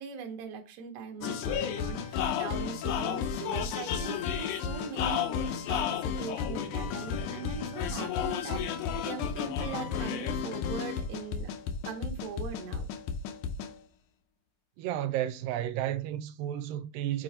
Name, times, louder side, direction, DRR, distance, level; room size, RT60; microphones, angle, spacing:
voice 1, 0.0-11.5 11.8-12.9, right 6 dB, 65° right, 1.8 m, -41 dB
sound 1, 1.2-13.7, left 7 dB, 75° left, 2.0 m, -32 dB
voice 2, 14.8-17.2, right 12 dB, 85° right, 2.3 m, -32 dB
6.7 x 3.8 x 4.2 m
omnidirectional pair, 3.9 m